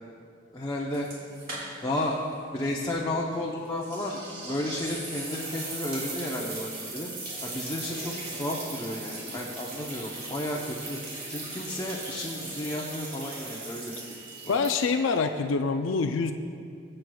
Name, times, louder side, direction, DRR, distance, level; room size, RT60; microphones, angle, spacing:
voice 1, 0.5-1.1 1.8-2.2 2.5-7.1 7.4-11.0 11.3-14.0 14.4-14.6, left 1 dB, 20° left, -3 dB, 0.7 m, -32 dB
sound 1, 0.9-2.1 2.3-2.4 3.8-15.1, right 2 dB, 50° right, 2.5 m, -38 dB
voice 2, 14.5-16.3, left 4 dB, 75° left, 7 dB, 0.4 m, -25 dB
23.0 x 7.7 x 2.3 m, 2.4 s
head